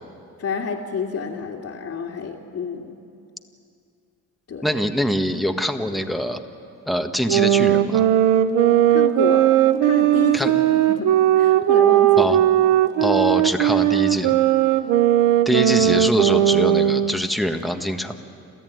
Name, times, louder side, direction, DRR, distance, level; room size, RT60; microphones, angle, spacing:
voice 1, 0.4-2.9 4.5-4.7 8.9-9.5 9.8-12.4 13.0-13.2 14.7-14.8, left 6 dB, 55° left, -5 dB, 2.3 m, -29 dB
voice 2, 4.6-6.4 6.9-8.1 10.3-10.5 12.2-12.4 13.0-14.3 15.4-18.1, equal, ahead, 5 dB, 1.6 m, -23 dB
sound 1, 7.3-17.3, right 12 dB, 90° right, 0.9 m, -17 dB
30.0 x 13.5 x 9.4 m, 2.5 s
cardioid pair, 90°, 30 cm